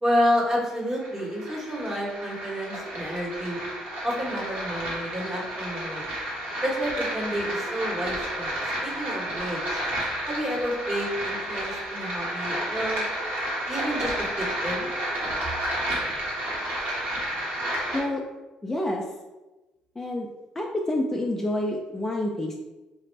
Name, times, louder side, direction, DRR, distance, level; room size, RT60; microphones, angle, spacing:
voice 1, 0.0-3.6 4.0-6.0 6.6-8.5 8.8-9.8 10.3-13.1 13.7-14.9, equal, 25° right, -3 dB, 1.4 m, -29 dB
sound 1, 0.7-18.0, right 1 dB, 70° right, 1.4 m, -31 dB
voice 2, 18.6-19.0 20.0-20.3 20.6-22.5, left 1 dB, 15° left, 0 dB, 0.4 m, -28 dB
4.3 x 2.5 x 3.2 m, 1.1 s
cardioid pair, 85°, 2 cm